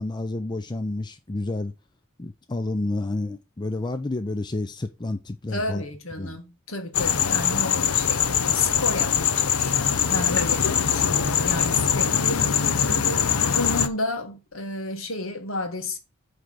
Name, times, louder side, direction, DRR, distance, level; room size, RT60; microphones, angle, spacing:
voice 1, 0.0-1.7 2.2-5.8 6.2-6.4, left 2 dB, 20° left, 0.5 m, -30 dB
voice 2, 5.5-16.0, left 2 dB, 70° left, 1.7 m, -32 dB
sound 1, 6.9-13.9, left 7 dB, 85° left, 0.8 m, -22 dB
8.9 x 3.4 x 6.3 m
head